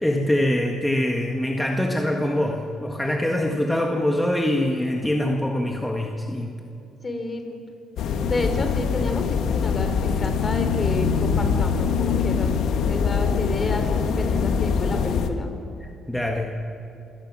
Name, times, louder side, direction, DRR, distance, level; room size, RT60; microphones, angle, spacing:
voice 1, 0.0-6.6 15.8-16.6, left 1 dB, 10° left, 1 dB, 1.7 m, -24 dB
voice 2, 7.0-7.6 8.3-12.5 12.9-15.5, left 2 dB, 35° left, 6 dB, 3.6 m, -30 dB
sound 1, 8.0-15.3, left 6 dB, 80° left, 1.5 m, -23 dB
27.0 x 17.5 x 6.2 m, 2.8 s
cardioid pair, 90°, 0 cm